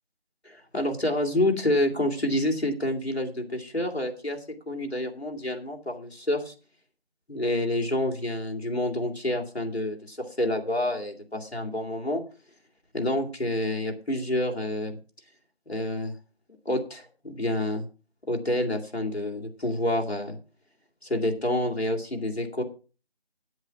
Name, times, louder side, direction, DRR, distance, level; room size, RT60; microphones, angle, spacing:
voice 1, 0.4-4.4 4.7-6.5 7.3-12.2 12.9-15.0 15.7-16.1 16.6-17.9 18.3-20.4 21.0-22.6, left 1 dB, 90° left, 1 dB, 2.9 m, -28 dB
9.2 x 8.0 x 6.0 m, 0.36 s
figure-of-eight pair, 175°, 31 cm